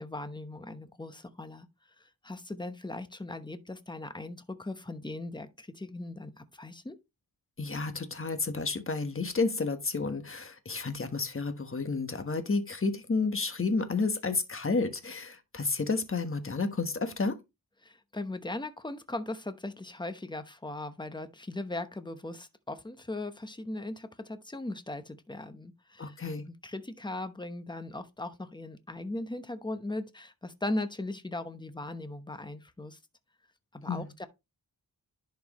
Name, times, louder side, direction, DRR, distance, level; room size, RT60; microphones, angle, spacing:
voice 1, 0.0-1.7 2.0-7.0 17.8-26.1 26.5-33.0 33.7-34.3, left 2 dB, 10° left, 0.9 m, -38 dB
voice 2, 7.6-17.4 26.0-26.4 33.9-34.1, left 3 dB, 35° left, 1.3 m, -31 dB
11.0 x 4.7 x 3.0 m
wide cardioid pair, 90°, 36 cm